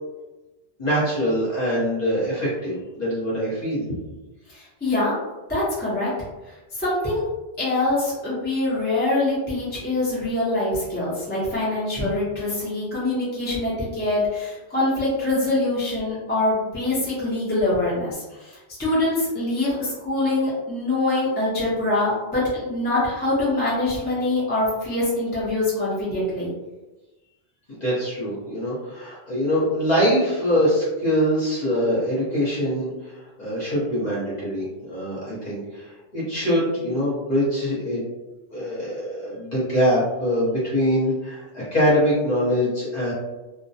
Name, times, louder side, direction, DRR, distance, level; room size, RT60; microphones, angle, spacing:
voice 1, 0.8-3.8 27.7-38.0 38.5-43.1, equal, 40° left, -8 dB, 1.0 m, -23 dB
voice 2, 4.5-5.1 5.5-6.1 6.8-7.2 7.6-26.5, left 2 dB, 10° left, -9 dB, 0.7 m, -24 dB
2.3 x 2.1 x 2.7 m, 1.1 s
omnidirectional pair, 1.1 m